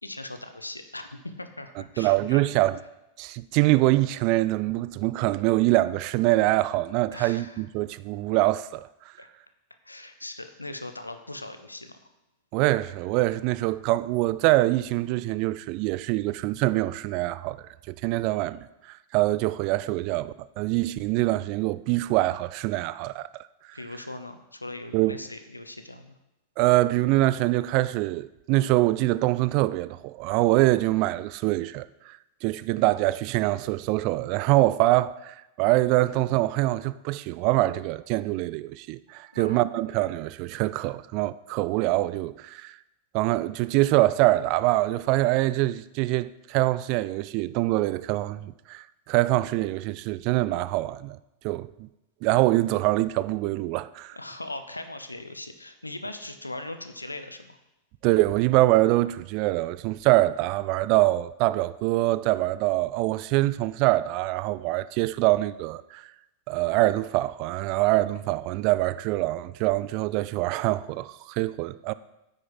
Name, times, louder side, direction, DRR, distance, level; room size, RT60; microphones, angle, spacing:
voice 1, 0.0-2.4 7.1-7.6 9.2-9.3 9.8-12.0 23.7-26.2 39.3-39.6 54.1-57.6, left 2 dB, 85° left, 0.8 m, -39 dB
voice 2, 2.0-2.8 3.2-8.9 12.5-17.6 17.9-23.3 24.9-25.2 26.6-42.7 43.1-51.2 51.4-51.9 52.2-54.2 58.0-66.1 66.5-71.9, right 18 dB, 45° right, 0.4 m, -24 dB
9.2 x 9.1 x 4.0 m
figure-of-eight pair, 90°, 0 cm